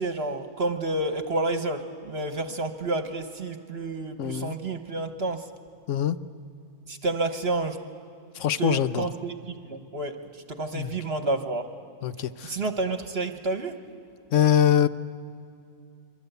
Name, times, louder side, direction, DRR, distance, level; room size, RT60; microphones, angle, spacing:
voice 1, 0.0-5.4 6.9-7.8 8.6-11.7 12.4-13.8, right 2 dB, 45° right, 7 dB, 1.3 m, -30 dB
voice 2, 4.2-4.6 5.9-6.2 8.3-9.1 10.7-11.0 12.0-12.6 14.3-14.9, left 10 dB, 60° left, 13 dB, 1.0 m, -23 dB
27.5 x 23.5 x 8.0 m, 2.6 s
omnidirectional pair, 1.5 m